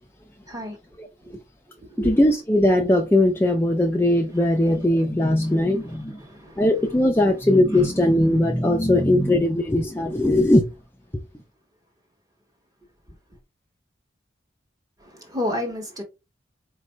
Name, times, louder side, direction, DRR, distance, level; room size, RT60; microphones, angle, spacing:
voice 1, 0.5-0.8 1.2-1.4 1.8-2.2 4.3-4.8 5.4-6.7 7.7-7.9 8.3-8.4 15.0-16.0, left 1 dB, 20° right, 1.1 m, -32 dB
voice 2, 2.0-6.1 6.6-10.6, left 1 dB, 10° left, 0.4 m, -19 dB
4.5 x 2.5 x 3.1 m
head